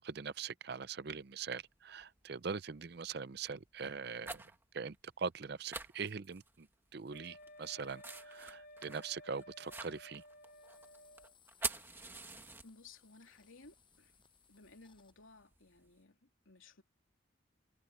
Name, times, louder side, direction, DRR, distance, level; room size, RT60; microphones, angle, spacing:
voice 1, 0.0-4.4 4.7-6.7 6.9-10.2, right 5 dB, 55° right, 0.5 m, -42 dB
sound 1, 1.1-1.2 2.0-2.3 2.8-3.0 3.8-4.6 4.9-5.0 5.2-5.4 5.7-6.7 7.1-13.1 13.4-15.9, right 3 dB, 10° right, 1.6 m, -46 dB
Wind instrument woodwind instrument, 7.1-11.3, equal, 50° left, 3.3 m, -56 dB
sound 2, 10.3-15.1, left 8 dB, 25° left, 7.3 m, -68 dB
voice 2, 12.6-14.1 14.5-16.8, left 3 dB, 85° left, 3.4 m, -58 dB
head